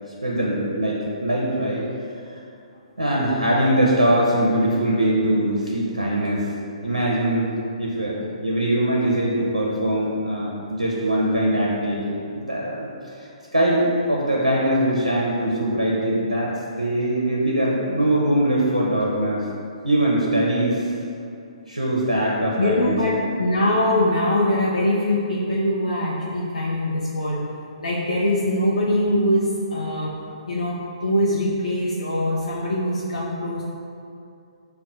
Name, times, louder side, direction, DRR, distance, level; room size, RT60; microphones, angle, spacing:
voice 1, 0.2-1.8 3.0-6.5 6.8-7.5 7.8-12.9 13.2-16.5 16.8-19.4 19.8-20.9 21.7-23.0, right 1 dB, 90° right, -5 dB, 0.5 m, -22 dB
voice 2, 22.6-23.1 23.4-27.5 27.8-30.1 30.5-33.6, left 1 dB, 70° left, -6 dB, 0.5 m, -22 dB
5.7 x 2.1 x 2.7 m, 2.5 s
figure-of-eight pair, 130°, 4 cm